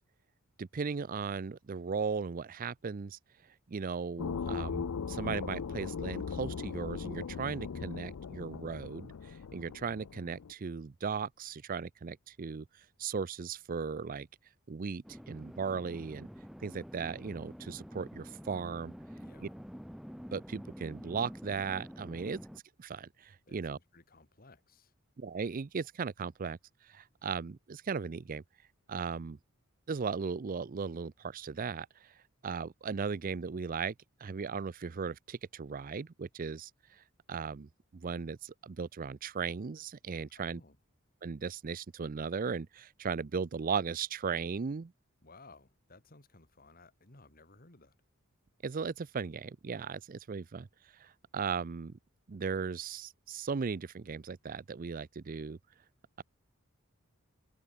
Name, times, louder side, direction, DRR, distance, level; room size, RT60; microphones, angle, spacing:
voice 1, 0.6-3.2 3.7-14.3 14.7-16.3 16.6-18.9 19.4-19.5 20.3-23.8 25.2-28.4 28.9-29.4 29.9-32.2 32.4-33.9 34.2-40.6 41.2-44.9 48.6-50.7 50.9-51.9 52.3-55.6, right 5 dB, 40° right, 0.4 m, -37 dB
sound 1, 4.2-10.5, left 6 dB, 90° left, 0.5 m, -39 dB
sound 2, 15.0-22.6, equal, ahead, 1.5 m, -48 dB
voice 2, 19.2-19.6 23.5-24.9 40.3-40.8 45.2-48.0, left 3 dB, 45° left, 2.7 m, -58 dB
head